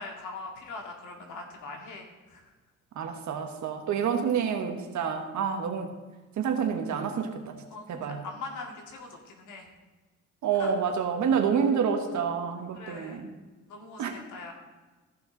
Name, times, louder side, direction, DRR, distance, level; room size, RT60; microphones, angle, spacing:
voice 1, 0.0-2.4 7.7-9.7 10.6-10.7 12.7-13.2 13.7-14.5, left 3 dB, 80° left, 2 dB, 2.1 m, -42 dB
voice 2, 2.9-5.9 6.4-7.6 7.9-8.2 10.4-13.3 14.0-14.2, right 7 dB, 70° right, 5 dB, 1.4 m, -28 dB
14.5 x 6.0 x 3.9 m, 1.3 s
cardioid pair, 90°, 30 cm